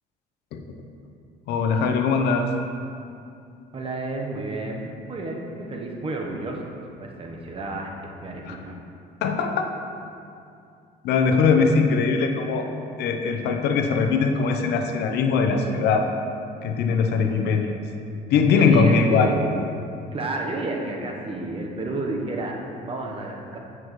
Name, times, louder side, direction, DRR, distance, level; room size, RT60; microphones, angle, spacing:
voice 1, 1.5-2.5 8.5-8.6 9.2-9.7 11.0-12.7 13.0-16.1 16.6-17.8 18.3-19.3, left 5 dB, 75° left, 5 dB, 0.7 m, -21 dB
voice 2, 3.7-6.7 7.0-8.8 18.6-19.6 20.1-23.6, right 2 dB, 35° right, 0 dB, 1.0 m, -31 dB
8.7 x 6.0 x 3.1 m, 2.5 s
cardioid pair, 110°, 17 cm